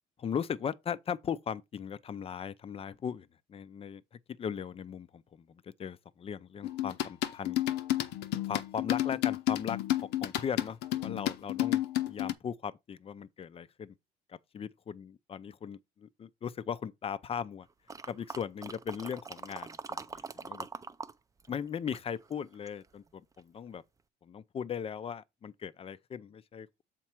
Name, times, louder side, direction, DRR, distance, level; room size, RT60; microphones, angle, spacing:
voice 1, 0.2-4.0 4.4-7.6 8.5-9.8 10.2-11.8 12.1-13.9 14.3-17.7 18.1-20.7 21.5-23.8 24.2-26.7, left 7 dB, 35° left, 0.6 m, -38 dB
sound 1, 6.6-12.3, left 13 dB, 85° left, 0.8 m, -31 dB
sound 2, 17.9-21.1 21.4-22.9 23.4-23.5, right 4 dB, 20° right, 0.5 m, -43 dB
7.3 x 4.5 x 4.5 m
cardioid pair, 110°, 17 cm